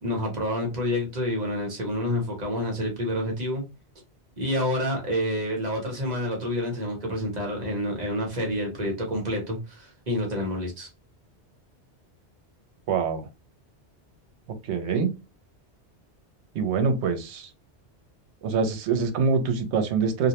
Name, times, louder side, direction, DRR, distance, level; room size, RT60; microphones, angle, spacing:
voice 1, 0.0-3.6 4.4-10.9, equal, 45° right, 0 dB, 0.8 m, -28 dB
voice 2, 12.9-13.3 14.6-15.1 16.5-17.5 18.4-20.3, right 5 dB, 80° right, 7 dB, 0.9 m, -24 dB
2.5 x 2.1 x 2.8 m, 0.27 s
omnidirectional pair, 1.2 m